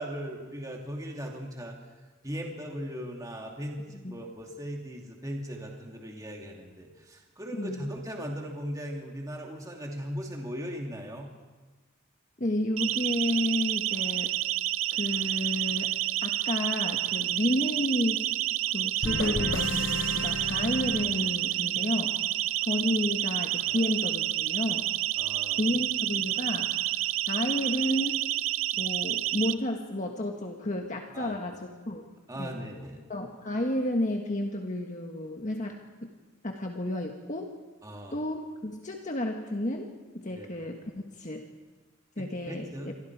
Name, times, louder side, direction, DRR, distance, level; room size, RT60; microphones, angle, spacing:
voice 1, 0.0-1.8 2.2-11.3 23.7-23.9 25.2-25.7 31.1-31.4 32.3-33.0 37.8-38.2 40.3-40.5 42.2-42.9, equal, 15° right, 0 dB, 2.7 m, -38 dB
voice 2, 12.4-14.3 14.9-15.9 16.2-18.3 18.7-22.2 22.7-24.9 25.6-26.7 27.3-28.2 28.8-32.0 32.4-32.6 33.1-36.1 36.4-37.5 38.1-39.9 40.1-40.8 41.2-41.4 42.2-42.9, left 1 dB, 40° left, 2 dB, 1.5 m, -31 dB
Siren, 12.8-29.5, right 13 dB, 90° right, 0.7 m, -29 dB
sound 1, 19.0-21.8, left 2 dB, 70° left, 1.1 m, -33 dB
28.0 x 24.5 x 4.8 m, 1.3 s
head